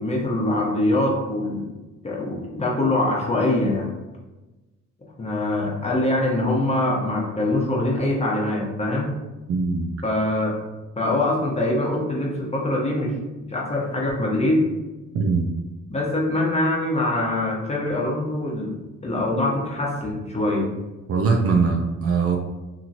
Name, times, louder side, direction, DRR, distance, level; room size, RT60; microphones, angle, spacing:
voice 1, 0.0-1.6 2.0-3.9 5.2-9.1 10.0-10.5 11.0-13.1 13.5-14.6 15.9-18.7 19.0-20.7, left 1 dB, 20° left, -2 dB, 0.9 m, -23 dB
voice 2, 9.5-9.9 15.1-15.5 21.1-22.4, right 4 dB, 50° right, 2 dB, 0.5 m, -21 dB
2.9 x 2.8 x 2.6 m, 1.1 s
cardioid pair, 90°, 30 cm